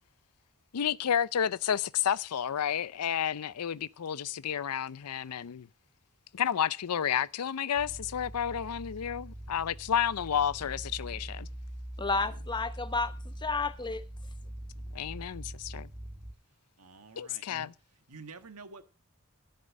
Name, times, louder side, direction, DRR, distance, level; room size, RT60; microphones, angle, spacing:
voice 1, 0.7-5.7 6.3-11.5 14.9-15.9 17.2-17.7, left 8 dB, 90° left, 0.5 m, -31 dB
sound 1, 7.7-16.3, right 1 dB, 25° right, 2.3 m, -43 dB
voice 2, 12.0-14.0, left 3 dB, 20° left, 0.8 m, -31 dB
voice 3, 16.8-17.7 18.1-18.8, right 3 dB, 85° right, 1.6 m, -48 dB
13.5 x 6.8 x 6.3 m
head